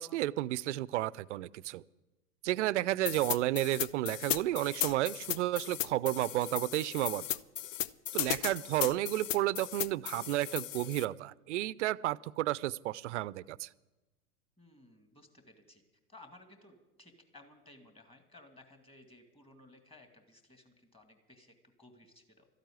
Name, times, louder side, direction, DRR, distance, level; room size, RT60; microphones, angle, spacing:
voice 1, 0.0-1.8 2.4-7.4 8.1-13.7, right 15 dB, 50° right, 21 dB, 0.5 m, -32 dB
voice 2, 2.8-3.1 8.4-8.7 14.6-15.8 16.1-22.5, left 2 dB, 10° left, 5 dB, 2.1 m, -58 dB
sound 1, 3.1-11.1, left 12 dB, 55° left, 0.6 m, -36 dB
13.5 x 9.1 x 9.3 m, 1.1 s
hypercardioid pair, 105°, 46 cm